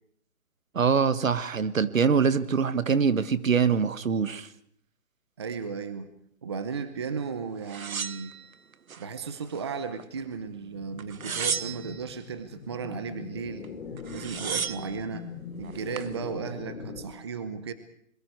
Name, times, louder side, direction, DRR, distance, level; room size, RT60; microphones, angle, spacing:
voice 1, 0.7-4.5, right 6 dB, 70° right, 13 dB, 1.7 m, -24 dB
voice 2, 5.4-6.1 6.4-8.3 9.0-13.7 14.1-15.3 15.6-17.7, right 5 dB, 20° right, 11 dB, 0.8 m, -35 dB
sound 1, 7.7-9.0 9.5-10.3 11.0-12.1 13.6-13.7 14.0-15.0 15.6-16.1, right 6 dB, 90° right, 1.3 m, -34 dB
sound 2, 10.4-17.1, left 5 dB, 50° left, 4.9 m, -42 dB
26.5 x 22.5 x 4.7 m, 0.68 s
hypercardioid pair, 170°, 41 cm